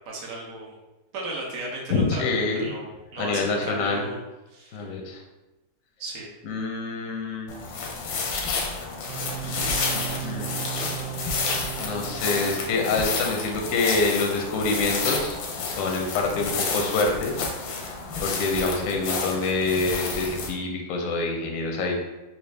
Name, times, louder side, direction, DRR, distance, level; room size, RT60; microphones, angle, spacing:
voice 1, 0.1-0.7 1.1-2.3 2.5-4.2 4.5-5.0 6.0-6.3, right 2 dB, 55° right, -3 dB, 1.2 m, -35 dB
voice 2, 1.9-2.7 3.2-4.1 4.7-5.2 6.4-7.5 9.4-9.6 9.9-10.5 11.1-11.3 11.8-17.3 18.2-21.9, left 3 dB, 65° left, 1 dB, 0.8 m, -26 dB
sound 1, 7.5-20.5, left 4 dB, 90° left, 1.4 m, -30 dB
sound 2, 9.1-13.5, right 13 dB, 80° right, 1.3 m, -36 dB
4.2 x 2.4 x 3.3 m, 1.0 s
omnidirectional pair, 2.0 m